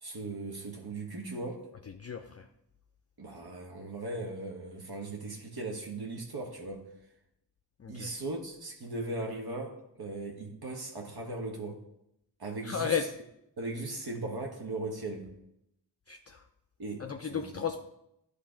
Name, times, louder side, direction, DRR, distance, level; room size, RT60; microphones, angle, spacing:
voice 1, 0.0-1.7 3.2-6.9 7.9-11.8 12.4-13.0 13.6-15.3 16.8-17.6, right 2 dB, 60° right, 0 dB, 1.4 m, -38 dB
voice 2, 1.9-2.5 7.8-8.1 12.6-13.0 16.1-16.4 17.0-17.8, left 7 dB, 35° left, 5 dB, 0.5 m, -34 dB
10.0 x 3.4 x 5.0 m, 0.81 s
cardioid pair, 50°, 42 cm